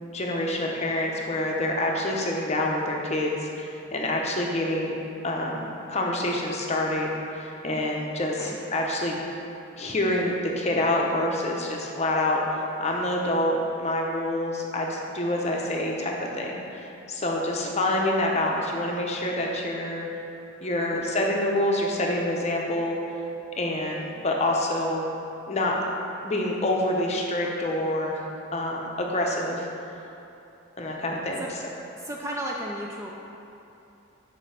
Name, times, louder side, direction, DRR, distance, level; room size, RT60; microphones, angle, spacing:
voice 1, 0.1-4.9 5.2-9.2 9.8-20.1 20.6-23.0 23.6-25.1 25.5-25.8 26.2-29.7 30.8-31.4, left 1 dB, 30° left, -1 dB, 0.7 m, -27 dB
voice 2, 32.0-33.1, right 1 dB, 15° right, -2 dB, 0.4 m, -34 dB
5.2 x 5.1 x 5.6 m, 2.9 s
head